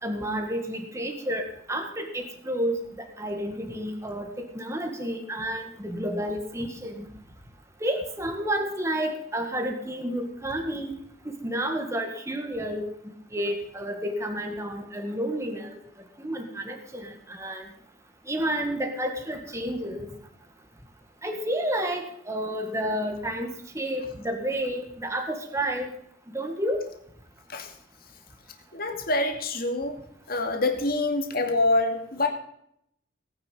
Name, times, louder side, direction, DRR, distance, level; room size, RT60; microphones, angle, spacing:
voice 1, 0.0-7.1 7.8-10.9 11.3-12.8 13.3-15.7 16.2-17.6 18.3-20.1 21.2-23.5 23.7-25.9 26.3-26.8, equal, 15° right, 4 dB, 1.8 m, -30 dB
voice 2, 28.7-30.0 30.3-32.3, left 2 dB, 45° left, 4 dB, 2.3 m, -26 dB
18.0 x 9.7 x 5.5 m, 0.73 s
head